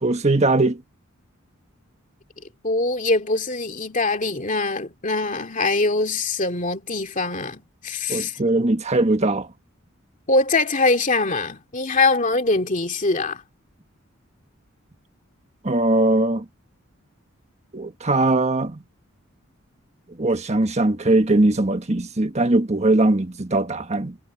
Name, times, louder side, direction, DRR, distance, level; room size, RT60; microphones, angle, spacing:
voice 1, 0.0-0.8 8.1-9.5 15.6-16.4 17.7-18.8 20.2-24.2, right 2 dB, 35° right, 1.4 m, -20 dB
voice 2, 2.6-8.4 10.3-13.4, left 3 dB, 40° left, 2.4 m, -23 dB
head